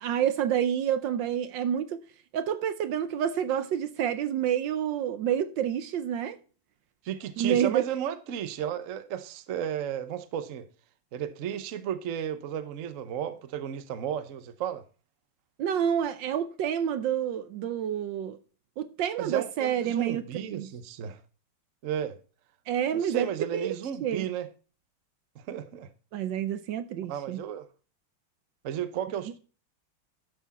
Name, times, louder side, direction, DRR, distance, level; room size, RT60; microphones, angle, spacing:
voice 1, 0.0-2.0 2.3-6.4 7.4-7.8 15.6-18.4 18.8-20.7 22.7-23.3 23.5-23.7 24.0-24.3 26.1-27.4, right 9 dB, 70° right, 1.3 m, -28 dB
voice 2, 7.0-10.7 11.1-14.8 19.2-21.2 21.8-22.2 22.9-24.5 25.3-25.9 27.1-27.7 28.6-29.4, right 9 dB, 55° right, 0.9 m, -34 dB
12.0 x 6.1 x 4.1 m
omnidirectional pair, 2.2 m